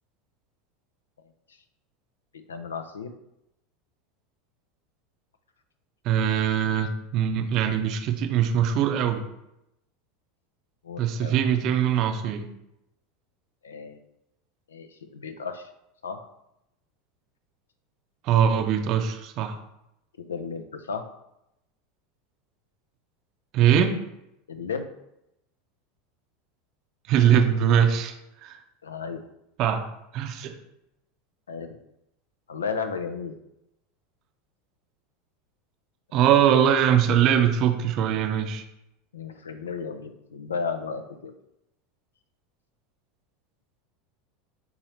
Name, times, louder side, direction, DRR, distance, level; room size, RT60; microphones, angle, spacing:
voice 1, 1.2-1.6 2.5-3.1 10.8-11.4 13.6-14.0 14.7-15.7 16.0-16.2 20.2-21.0 24.5-24.9 28.8-29.2 31.5-31.8 32.5-33.4 36.1-36.5 39.1-41.3, left 5 dB, 80° left, 7 dB, 0.4 m, -34 dB
voice 2, 6.0-9.2 11.0-12.5 18.2-19.6 23.5-23.9 27.1-28.1 28.4-28.6 29.6-30.6 36.1-38.6, right 9 dB, 50° right, 6 dB, 0.6 m, -22 dB
3.8 x 2.9 x 4.2 m, 0.84 s
figure-of-eight pair, 80°, 0 cm